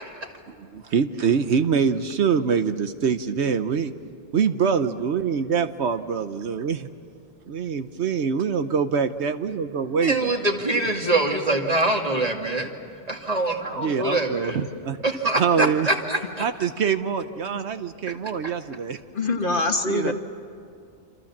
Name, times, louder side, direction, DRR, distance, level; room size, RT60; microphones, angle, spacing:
voice 1, 0.6-3.9 4.3-6.9 7.5-10.4 13.8-15.0 15.4-15.9 16.4-19.0 19.9-20.1, right 6 dB, 70° right, 9 dB, 1.1 m, -24 dB
voice 2, 10.0-12.7 13.1-14.6 15.0-16.2, right 2 dB, 35° right, 2 dB, 2.3 m, -24 dB
voice 3, 19.1-20.1, left 2 dB, 50° left, 5 dB, 1.6 m, -24 dB
27.5 x 27.0 x 7.3 m, 2.4 s
omnidirectional pair, 1.2 m